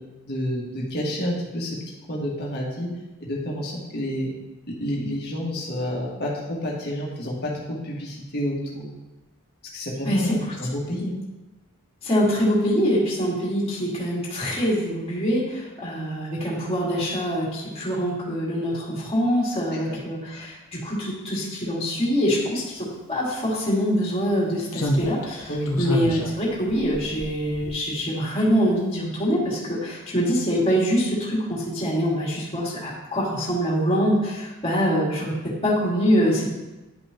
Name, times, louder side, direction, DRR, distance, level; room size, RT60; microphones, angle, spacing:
voice 1, 0.3-1.8 2.1-2.9 3.2-4.3 4.8-8.9 9.7-11.1 19.9-20.0 25.5-25.8, equal, 45° left, -4 dB, 1.8 m, -29 dB
voice 2, 10.0-10.5 12.0-36.5, equal, 25° left, -6 dB, 2.4 m, -24 dB
Slam, 23.3-23.4 24.7-28.2 28.5-28.7, equal, 70° left, 1.0 m, -29 dB
11.0 x 5.4 x 2.9 m, 1.1 s
head